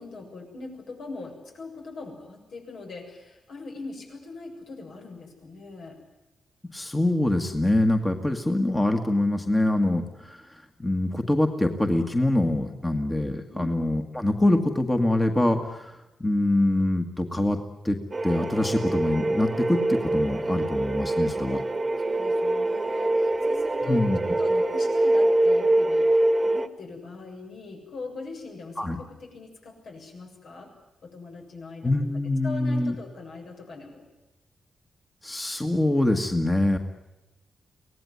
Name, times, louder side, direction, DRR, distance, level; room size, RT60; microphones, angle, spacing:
voice 1, 0.0-6.0 13.5-13.9 22.0-24.1 24.4-30.7 31.0-31.9 32.4-34.0, left 3 dB, 70° left, 2 dB, 7.1 m, -41 dB
voice 2, 6.7-10.4 10.8-17.6 17.8-18.0 18.2-21.6 23.9-24.2 28.8-29.0 31.8-32.9 35.2-36.8, left 1 dB, 15° left, 4 dB, 1.8 m, -24 dB
sound 1, 18.1-26.7, right 2 dB, 20° right, 1.5 m, -24 dB
24.0 x 18.5 x 9.5 m, 0.99 s
wide cardioid pair, 130°, 0 cm